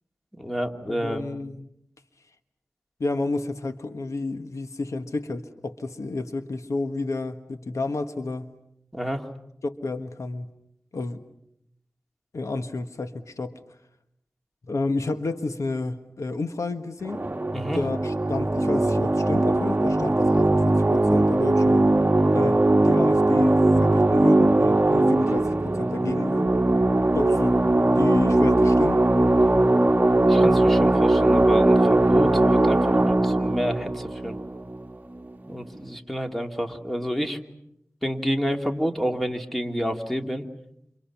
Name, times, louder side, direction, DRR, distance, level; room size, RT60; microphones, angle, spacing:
voice 1, 0.4-1.3 8.9-9.3 17.5-17.8 30.2-34.4 35.5-37.4 38.0-40.5, equal, 5° left, 4 dB, 2.6 m, -29 dB
voice 2, 0.9-1.7 3.0-8.5 9.6-10.5 10.9-11.2 12.3-13.6 14.7-17.3 17.7-21.9 22.3-26.5 27.1-27.6 27.9-29.0, left 3 dB, 80° left, 8 dB, 1.5 m, -30 dB
sound 1, 17.0-35.2, right 2 dB, 30° right, 1.5 m, -20 dB
29.0 x 28.5 x 6.0 m, 0.77 s
wide cardioid pair, 60°, 5 cm